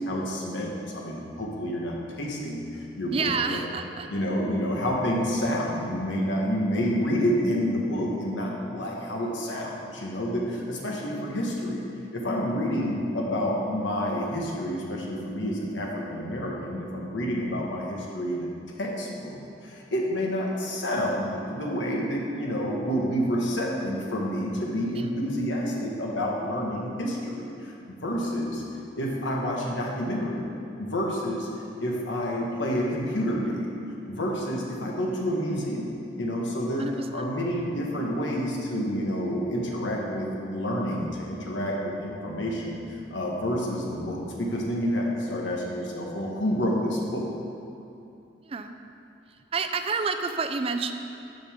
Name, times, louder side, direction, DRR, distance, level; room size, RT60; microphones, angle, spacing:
voice 1, 0.1-3.6 4.1-11.8 12.1-18.5 18.8-28.6 29.0-30.5 30.8-31.5 31.8-33.7 34.1-42.8 43.1-47.3, equal, 85° left, -2 dB, 1.5 m, -29 dB
voice 2, 3.1-4.1 24.9-25.1 36.8-37.2 48.5-48.7 49.3-50.9, right 4 dB, 30° right, 8 dB, 0.4 m, -29 dB
13.5 x 5.3 x 3.6 m, 2.8 s
head